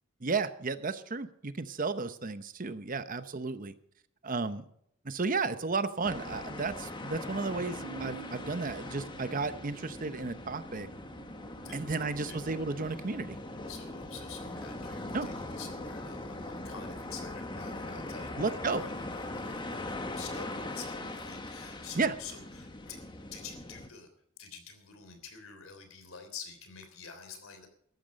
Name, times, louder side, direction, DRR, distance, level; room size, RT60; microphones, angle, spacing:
voice 1, 0.2-3.7 4.2-4.6 5.0-10.9 11.7-13.4 15.1-15.3 18.4-18.8 22.0-22.1, right 4 dB, 40° right, 12 dB, 0.8 m, -33 dB
sound 1, 6.0-23.9, left 2 dB, 25° left, 1.4 m, -41 dB
sound 2, 7.2-17.0 17.4-17.5, right 4 dB, 85° right, 2.5 m, -51 dB
voice 2, 11.6-12.4 13.7-23.0 23.3-24.1 24.4-27.7, left 6 dB, 85° left, 7 dB, 3.3 m, -48 dB
14.0 x 12.0 x 5.2 m, 0.70 s
head